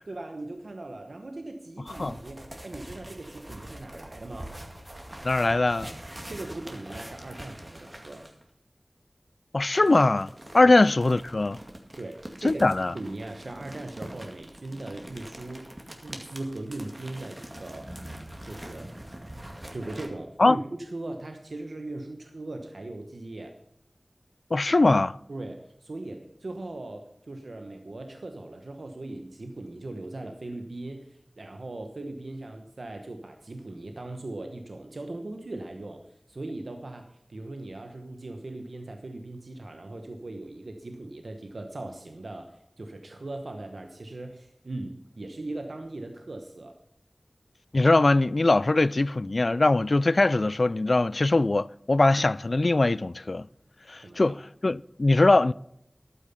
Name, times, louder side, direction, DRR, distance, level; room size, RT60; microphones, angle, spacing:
voice 1, 0.1-4.6 6.3-8.3 10.6-10.7 12.0-12.7 12.9-15.7 16.0-17.9 18.4-18.9 19.7-23.6 25.3-46.8 54.0-54.4, right 2 dB, 85° right, 1.0 m, -39 dB
sound 1, 1.9-8.4 9.7-20.1, right 1 dB, 30° right, 2.2 m, -44 dB
voice 2, 5.2-5.9 9.5-11.6 12.4-12.9 20.4-20.6 24.5-25.2 47.7-53.5 53.9-55.5, left 2 dB, 65° left, 0.3 m, -21 dB
12.0 x 9.1 x 5.7 m
wide cardioid pair, 45°, 0 cm